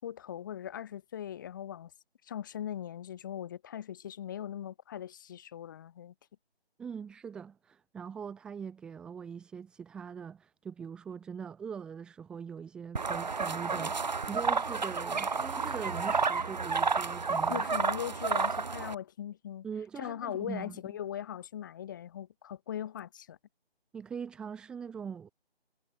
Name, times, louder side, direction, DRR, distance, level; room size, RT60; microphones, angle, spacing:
voice 1, 0.0-1.9 2.2-6.1 17.5-19.7 20.0-23.4, left 10 dB, 20° left, 6.9 m, -40 dB
voice 2, 6.8-17.6 19.6-20.8 23.9-25.3, right 7 dB, 5° right, 2.8 m, -42 dB
sound 1, 13.0-19.0, right 4 dB, 40° right, 7.5 m, -31 dB
figure-of-eight pair, 170°, 32 cm